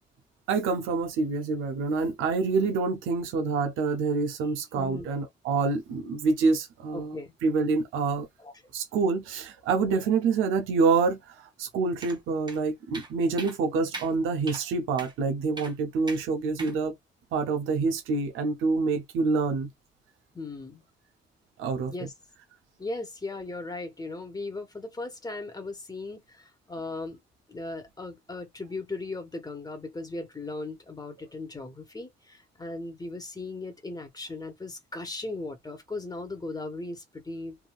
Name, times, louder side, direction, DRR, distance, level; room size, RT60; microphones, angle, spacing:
voice 1, 0.5-7.2 7.4-8.3 8.7-16.9 17.3-19.7 21.6-22.1, right 4 dB, 85° right, 0.7 m, -27 dB
voice 2, 4.7-5.1 6.9-7.3 8.4-8.5 9.7-10.0 16.6-16.8 18.9-19.0 20.3-20.8 21.9-22.1 22.8-27.2 27.5-37.6, left 2 dB, 20° left, 1.2 m, -37 dB
sound 1, 12.0-12.2 12.5-12.6 12.9-13.1 13.4-13.6 13.9-14.1 14.5-14.6 15.0-15.1 15.6-15.7 16.1-16.2 16.6-16.8, right 3 dB, 20° right, 0.9 m, -39 dB
3.5 x 2.6 x 2.3 m
cardioid pair, 90°, 20 cm